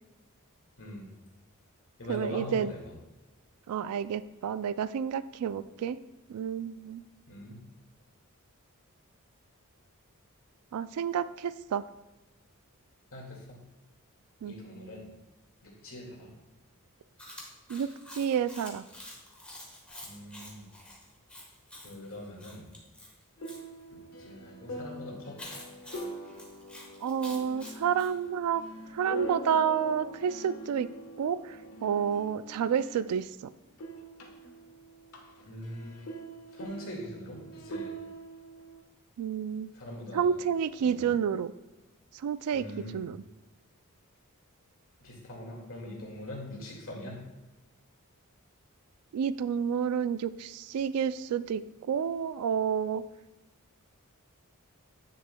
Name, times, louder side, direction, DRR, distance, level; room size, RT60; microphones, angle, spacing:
voice 1, 0.8-1.1 2.0-2.9 7.3-7.6 13.1-13.6 14.4-15.1 15.6-16.3 20.0-20.7 21.8-22.7 24.2-25.4 35.4-36.1 36.5-37.9 39.7-40.3 40.8-41.1 42.5-43.0 45.0-47.2, left 1 dB, 65° left, -1 dB, 2.0 m, -42 dB
voice 2, 2.1-2.7 3.7-6.0 6.3-7.0 10.7-11.8 14.4-14.5 17.7-18.8 27.0-28.6 28.9-30.9 31.2-33.3 39.2-39.7 40.1-41.5 42.2-42.7 42.9-43.2 49.1-53.0, right 7 dB, 75° right, 15 dB, 0.3 m, -30 dB
Chewing mastication, 17.2-23.6 25.4-28.1, left 1 dB, 5° left, 1.3 m, -48 dB
sound 1, 23.4-33.4 33.7-38.8, right 1 dB, 80° left, 1.2 m, -44 dB
9.8 x 6.7 x 2.2 m, 1.1 s
head